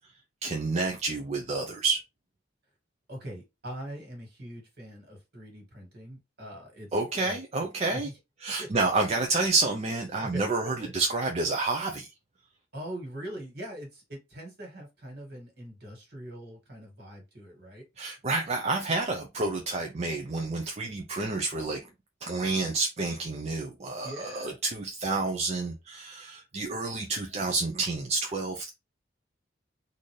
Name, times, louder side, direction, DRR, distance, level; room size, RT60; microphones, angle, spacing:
voice 1, 0.4-2.0 6.9-8.1 8.4-12.1 18.0-21.8 22.2-28.7, right 3 dB, 35° right, 0.5 m, -29 dB
voice 2, 3.1-6.9 7.2-7.4 7.9-8.1 8.6-8.8 10.2-10.9 12.7-17.8 24.0-24.6, equal, 55° right, 1.8 m, -42 dB
4.0 x 2.6 x 3.1 m
head